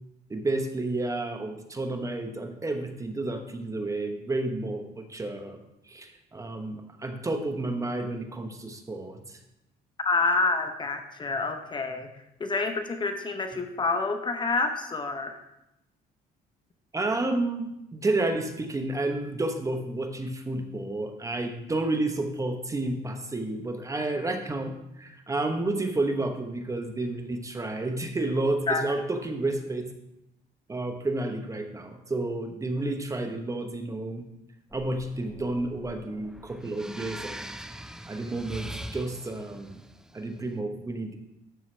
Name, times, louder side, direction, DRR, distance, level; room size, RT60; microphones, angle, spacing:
voice 1, 0.3-9.4 16.9-29.9 30.7-34.3 34.7-37.5 38.1-39.8 40.1-41.2, right 2 dB, 20° right, 5 dB, 1.0 m, -31 dB
voice 2, 10.0-12.1 12.4-15.4 28.7-28.8, left 3 dB, 25° left, 6 dB, 0.9 m, -28 dB
sound 1, 34.7-40.4, right 1 dB, 5° right, 0.5 m, -42 dB
12.5 x 7.4 x 3.3 m, 0.86 s
cardioid pair, 110°, 17 cm